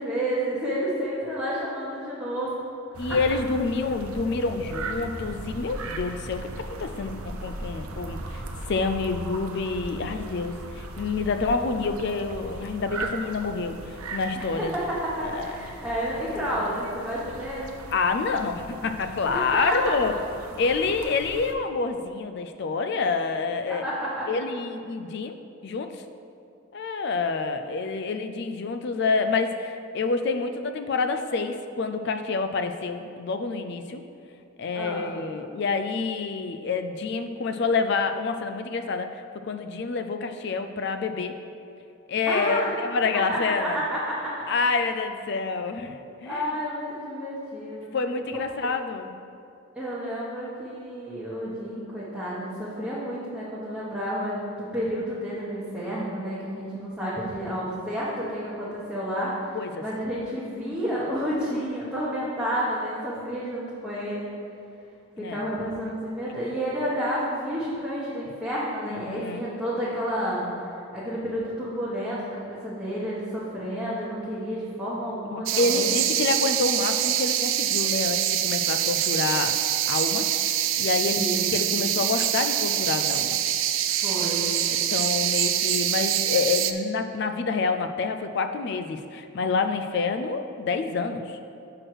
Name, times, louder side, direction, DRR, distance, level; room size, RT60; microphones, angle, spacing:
voice 1, 0.0-2.6 3.0-3.2 14.3-17.7 19.3-19.8 23.7-24.3 34.7-35.1 42.3-42.7 43.1-44.5 46.2-47.9 49.8-64.3 65.2-70.4 70.9-75.9 81.0-81.4 83.9-84.5, equal, 5° right, -11 dB, 1.0 m, -30 dB
sound 1, 2.9-21.5, right 2 dB, 90° right, 0.7 m, -38 dB
voice 2, 3.0-6.5 6.8-8.4 8.7-14.7 15.2-15.5 17.9-20.1 20.6-23.8 24.3-25.4 25.6-26.0 26.7-34.0 34.6-41.3 42.1-43.8 44.5-46.5 47.9-49.1 59.5-59.8 65.2-65.4 66.2-66.3 68.9-69.5 75.3-79.6 79.9-80.3 80.8-81.2 81.5-83.4 84.7-91.4, left 4 dB, 50° left, 8 dB, 0.3 m, -27 dB
sound 2, 75.5-86.7, right 11 dB, 65° right, 0.3 m, -25 dB
6.2 x 4.8 x 6.1 m, 2.6 s
head